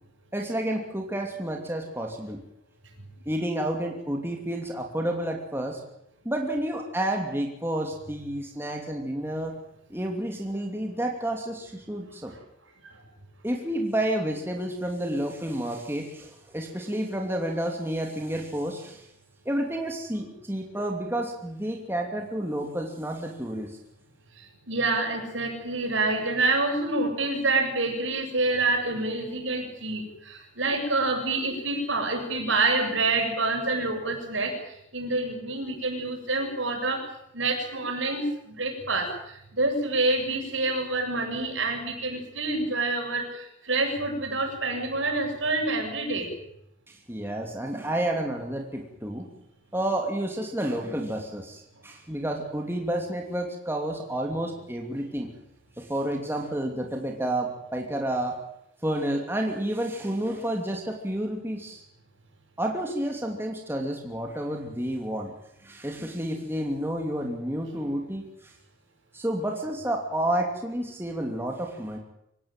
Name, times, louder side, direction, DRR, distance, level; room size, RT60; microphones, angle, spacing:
voice 1, 0.3-2.4 3.3-5.8 6.2-9.6 9.9-12.3 13.4-19.1 19.4-23.7 46.9-49.3 49.7-55.3 55.8-58.4 58.8-61.8 62.6-65.3 65.6-68.5 69.1-72.0, right 1 dB, 10° right, 1 dB, 2.8 m, -30 dB
voice 2, 24.7-34.5 34.9-37.0 37.3-39.1 39.5-43.2 43.7-46.3, right 2 dB, 70° right, 3 dB, 7.5 m, -27 dB
26.0 x 17.0 x 9.1 m, 0.79 s
head